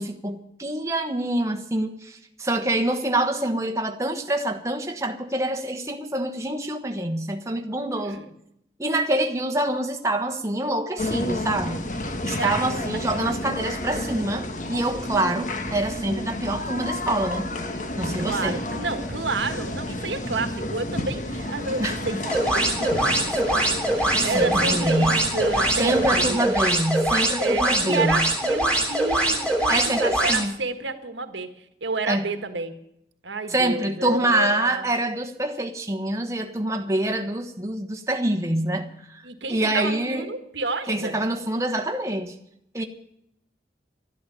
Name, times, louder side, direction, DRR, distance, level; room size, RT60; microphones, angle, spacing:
voice 1, 0.0-8.2 8.8-11.8 12.2-17.5 18.0-18.6 21.8-22.2 24.1-25.3 25.8-28.2 29.7-30.6 32.1-32.3 33.5-40.3 40.9-42.3 42.7-42.8, right 1 dB, 15° right, 4 dB, 1.2 m, -26 dB
voice 2, 8.0-8.3 12.4-12.5 16.4-16.6 18.2-26.4 27.4-32.8 33.2-34.8 39.2-41.2 42.8-42.9, right 3 dB, 90° right, 8 dB, 1.6 m, -30 dB
sound 1, 11.0-26.3, left 1 dB, 45° left, 1.4 m, -31 dB
sound 2, 22.2-30.4, right 1 dB, 5° left, 3.2 m, -23 dB
12.5 x 11.5 x 8.5 m, 0.76 s
head